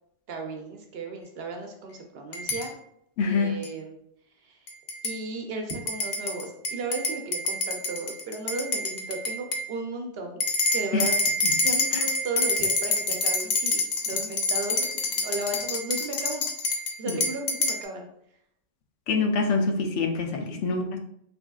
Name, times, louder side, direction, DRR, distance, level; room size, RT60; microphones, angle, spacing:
voice 1, 0.3-2.7 3.2-3.9 4.4-4.6 5.0-10.4 10.7-11.1 11.6-16.4 17.0-18.1 20.4-20.6, right 2 dB, 65° right, 3 dB, 0.8 m, -35 dB
sound 1, 2.3-2.7 3.6-3.7 4.7-5.2 5.7-9.7 10.4-17.8, left 2 dB, 60° left, 0.5 m, -27 dB
voice 2, 3.2-3.5 10.9-11.1 11.4-11.5 11.9-12.0 17.1-17.2 19.1-21.0, left 4 dB, 85° left, 4 dB, 0.9 m, -26 dB
3.4 x 3.4 x 2.3 m, 0.73 s
omnidirectional pair, 1.2 m